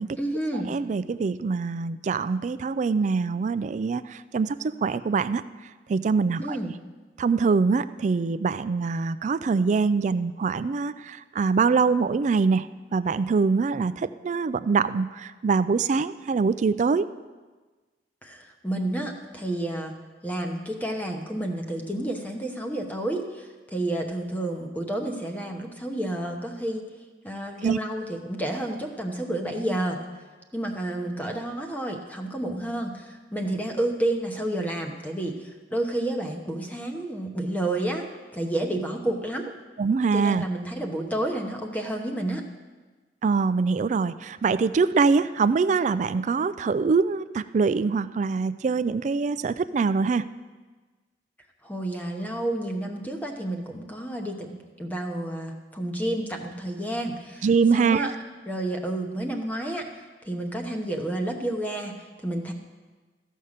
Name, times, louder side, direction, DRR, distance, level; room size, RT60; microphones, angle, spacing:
voice 1, 0.2-0.7 6.4-6.8 18.2-19.9 20.2-26.9 27.2-30.0 30.5-39.5 40.1-42.4 51.6-58.1 58.4-62.5, right 1 dB, 10° left, 3 dB, 1.0 m, -30 dB
voice 2, 0.7-5.4 5.9-6.6 7.2-17.1 27.6-27.8 39.8-40.5 43.2-50.2 57.4-58.1, right 4 dB, 45° right, 14 dB, 0.3 m, -24 dB
14.0 x 5.5 x 6.5 m, 1.3 s
head